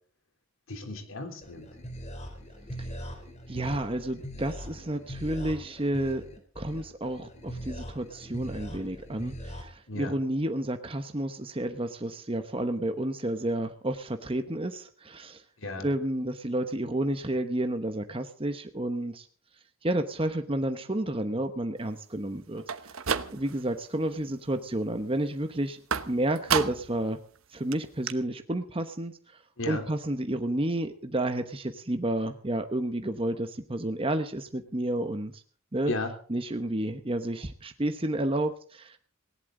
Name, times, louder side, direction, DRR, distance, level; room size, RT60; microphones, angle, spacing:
voice 1, 0.7-1.7 9.9-10.2 15.6-15.9 29.6-29.9 35.8-36.1, left 2 dB, 70° left, 6 dB, 3.3 m, -34 dB
sound 1, 1.4-9.6, equal, 35° left, 3.5 m, -41 dB
voice 2, 3.5-6.2 6.6-15.4 15.8-19.3 19.8-22.6 23.3-25.8 26.1-27.2 27.5-29.4 29.7-35.4 35.7-35.9 36.3-39.0, right 1 dB, 25° right, 7 dB, 1.0 m, -31 dB
sound 2, 22.6-23.7 24.1-24.6 25.9-27.0 27.4-27.5 27.7-27.8 28.1-28.2, right 6 dB, 75° right, 1.0 m, -31 dB
19.0 x 17.5 x 3.9 m, 0.42 s
head